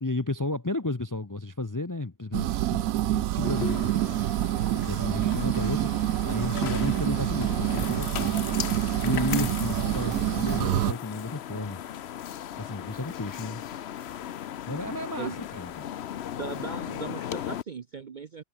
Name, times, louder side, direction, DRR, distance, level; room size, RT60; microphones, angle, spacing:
voice 1, 0.0-4.1 4.7-5.9 6.2-8.5 9.0-11.8 12.6-13.6 14.7-15.9, left 2 dB, 20° left, 0.6 m, -33 dB
sound 1, 2.3-10.9, right 14 dB, 85° right, 1.1 m, -27 dB
sound 2, 3.4-17.6, left 10 dB, 55° left, 0.9 m, -37 dB
voice 2, 16.4-18.4, right 5 dB, 45° right, 0.7 m, -38 dB
omnidirectional pair, 1.5 m